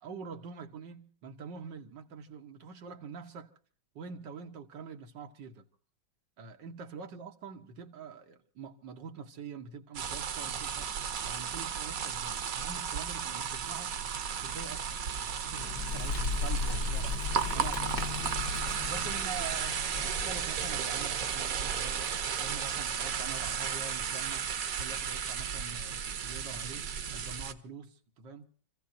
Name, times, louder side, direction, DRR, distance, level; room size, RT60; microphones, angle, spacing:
voice 1, 0.0-3.5 4.0-5.7 6.4-14.0 14.4-18.2 18.9-22.1 22.4-24.5 24.8-28.5, right 5 dB, 85° right, 1.8 m, -45 dB
sound 1, 9.9-27.5, right 7 dB, 55° right, 1.2 m, -34 dB
Bird, 15.3-21.0, left 4 dB, 65° left, 1.8 m, -36 dB
29.0 x 15.5 x 2.7 m
omnidirectional pair, 1.9 m